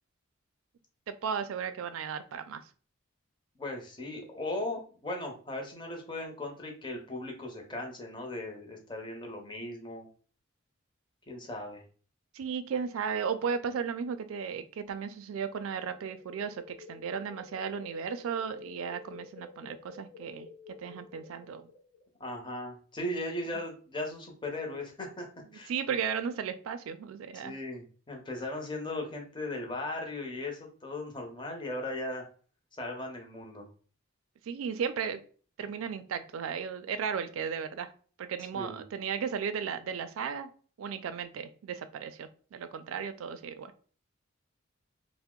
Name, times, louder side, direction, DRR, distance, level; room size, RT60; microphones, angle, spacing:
voice 1, 1.1-2.6 12.3-20.5 20.8-21.7 25.7-27.5 34.5-35.2 35.6-37.9 38.2-40.5 40.8-43.7, right 6 dB, 90° right, 11 dB, 0.3 m, -35 dB
voice 2, 3.6-10.1 11.3-11.8 22.2-25.3 25.5-25.7 27.3-32.3 32.7-33.7 38.5-38.8, left 1 dB, 25° left, 2 dB, 0.7 m, -37 dB
sound 1, 15.5-22.0, left 4 dB, 75° left, 1.0 m, -50 dB
2.7 x 2.0 x 3.6 m, 0.41 s
head